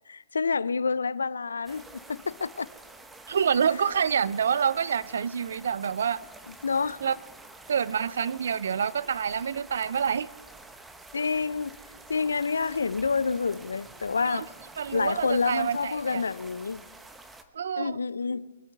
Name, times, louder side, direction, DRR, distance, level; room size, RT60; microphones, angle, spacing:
voice 1, 0.1-2.7 6.5-7.0 11.1-11.8 12.1-14.5 14.9-16.8 17.8-18.5, left 5 dB, 80° left, 0.5 m, -28 dB
sound 1, 1.6-17.4, right 2 dB, 10° right, 1.1 m, -49 dB
voice 2, 3.3-6.2 7.0-7.2 7.7-10.3 14.2-14.4 14.8-16.2 17.5-18.0, right 7 dB, 70° right, 0.5 m, -27 dB
23.5 x 9.0 x 4.6 m
hypercardioid pair, 125°, 0 cm